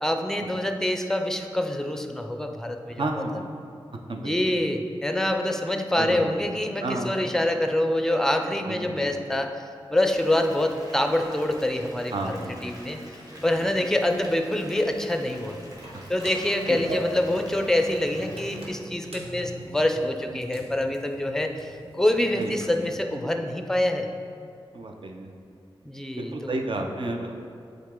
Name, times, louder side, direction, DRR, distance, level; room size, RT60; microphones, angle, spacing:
voice 1, 0.0-3.2 4.2-9.6 9.9-13.0 13.4-15.6 16.1-24.1 25.8-26.6, left 1 dB, 5° left, 5 dB, 0.5 m, -26 dB
voice 2, 3.0-3.4 4.1-4.5 5.9-6.3 6.8-7.1 8.6-9.1 12.1-12.5 13.5-13.7 16.7-16.9 22.4-22.5 24.7-25.3 26.1-27.5, right 2 dB, 55° right, 3 dB, 0.6 m, -31 dB
Water tap faucet / Bathtub (filling or washing) / Fill (with liquid), 10.0-18.7, equal, 40° right, 1.2 m, -45 dB
sound 1, 15.8-22.9, right 1 dB, 85° right, 1.0 m, -41 dB
7.4 x 3.9 x 3.8 m, 2.4 s
cardioid pair, 60°, 10 cm